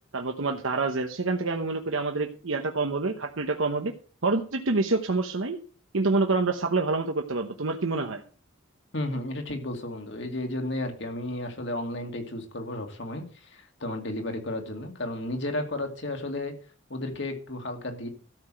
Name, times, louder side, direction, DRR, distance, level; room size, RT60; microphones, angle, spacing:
voice 1, 0.1-3.9 4.2-5.6 5.9-8.2, right 3 dB, 85° right, 4 dB, 1.0 m, -27 dB
voice 2, 8.9-16.5 16.9-18.1, left 1 dB, 60° left, 4 dB, 2.4 m, -33 dB
13.0 x 5.9 x 7.6 m, 0.41 s
head